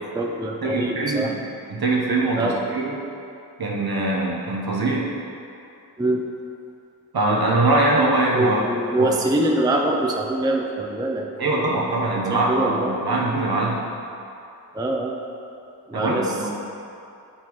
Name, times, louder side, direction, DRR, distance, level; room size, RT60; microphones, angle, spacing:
voice 1, 0.0-1.3 2.4-2.6 6.0-6.2 8.3-11.8 12.3-13.2 14.7-15.2 15.9-16.5, right 1 dB, 10° right, 1 dB, 0.5 m, -24 dB
voice 2, 0.6-1.4 1.7-2.9 3.6-5.0 7.1-9.1 11.4-13.8 15.9-16.5, right 2 dB, 60° right, -3 dB, 1.1 m, -22 dB
8.3 x 3.7 x 3.1 m, 2.6 s
cardioid pair, 50°, 42 cm